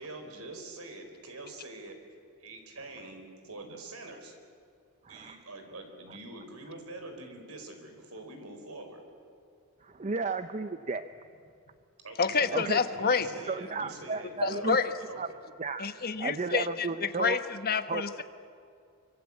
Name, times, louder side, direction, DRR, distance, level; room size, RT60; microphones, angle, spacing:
voice 1, 0.0-2.0 2.4-4.4 5.1-9.0 12.0-15.2, right 2 dB, 75° right, 5 dB, 4.4 m, -44 dB
voice 2, 5.0-5.4 9.8-11.1 12.5-12.8 13.5-14.8 15.2-15.3 15.6-15.9 16.2-17.4 17.9-18.2, right 4 dB, 35° right, 10 dB, 0.7 m, -33 dB
voice 3, 12.2-13.3 14.4-14.9 15.8-18.2, left 5 dB, 45° left, 10 dB, 1.2 m, -28 dB
25.5 x 25.0 x 8.5 m, 2.4 s
head